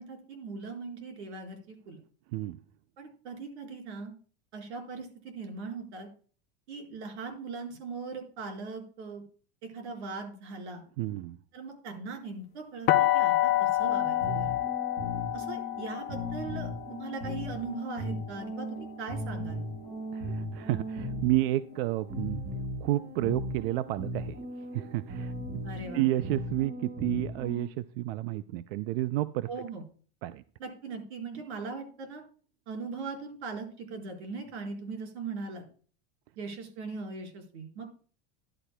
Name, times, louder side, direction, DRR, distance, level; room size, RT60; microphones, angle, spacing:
voice 1, 0.0-2.0 3.0-4.1 4.5-6.1 6.7-9.2 9.6-10.8 11.5-14.5 15.3-19.6 25.6-26.0 29.5-29.8 30.6-32.2 32.7-35.6 36.4-38.1, right 4 dB, 85° right, 3 dB, 4.5 m, -40 dB
voice 2, 2.3-2.6 11.0-11.4 20.1-22.4 22.8-25.3 25.9-29.5 30.2-30.4, right 16 dB, 60° right, 13 dB, 0.5 m, -31 dB
sound 1, 12.9-18.7, left 14 dB, 30° left, 0.7 m, -28 dB
sound 2, 13.8-27.7, left 1 dB, 25° right, 5.8 m, -37 dB
14.5 x 11.0 x 2.2 m, 0.41 s
supercardioid pair, 165°, 33 cm